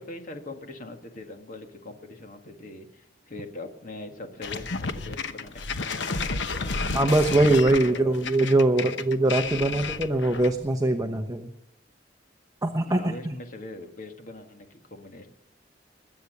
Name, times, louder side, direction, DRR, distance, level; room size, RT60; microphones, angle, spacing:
voice 1, 0.1-6.9 7.6-8.2 8.7-9.1 9.6-9.9 12.8-15.3, left 2 dB, 50° left, 6 dB, 1.8 m, -42 dB
sound 1, 4.4-10.7, left 4 dB, 75° left, 1.0 m, -31 dB
voice 2, 6.9-11.5 12.6-13.3, right 2 dB, 20° right, 5 dB, 0.9 m, -22 dB
21.5 x 8.5 x 6.7 m, 0.83 s
head